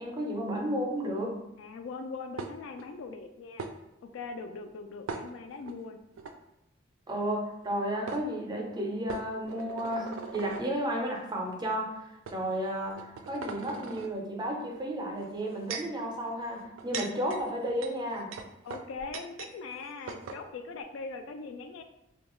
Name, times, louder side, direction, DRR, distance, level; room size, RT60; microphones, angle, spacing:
voice 1, 0.0-1.4 7.1-12.9 13.3-18.3, equal, 20° right, 0 dB, 0.5 m, -33 dB
voice 2, 1.6-3.7 4.0-6.0 18.6-21.8, left 4 dB, 75° left, 7 dB, 0.3 m, -41 dB
sound 1, 2.4-2.9 3.6-3.7 5.1-5.7 6.2-6.3 7.6-7.7 8.1-8.2 9.1-10.7 11.5-11.6 12.3-12.4 12.9-14.1 15.2-16.0 16.6-19.5 19.8-19.9 20.1-20.4, right 5 dB, 80° right, 0.3 m, -40 dB
2.8 x 2.2 x 2.9 m, 0.88 s
head